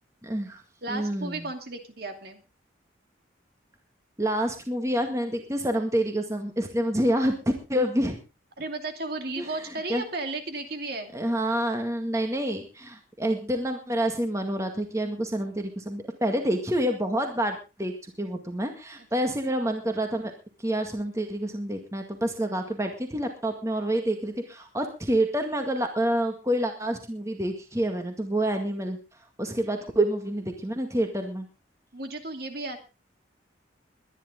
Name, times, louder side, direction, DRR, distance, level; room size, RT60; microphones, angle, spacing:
voice 1, 0.2-0.6 0.9-1.5 4.2-8.2 9.4-10.0 11.1-20.3 20.6-29.0 29.4-31.5, right 1 dB, 15° right, 4 dB, 1.9 m, -28 dB
voice 2, 0.8-2.4 8.6-11.1 19.2-19.3 29.5-29.8 31.9-32.8, right 2 dB, 55° right, 6 dB, 2.6 m, -34 dB
22.0 x 10.5 x 3.8 m, 0.30 s
head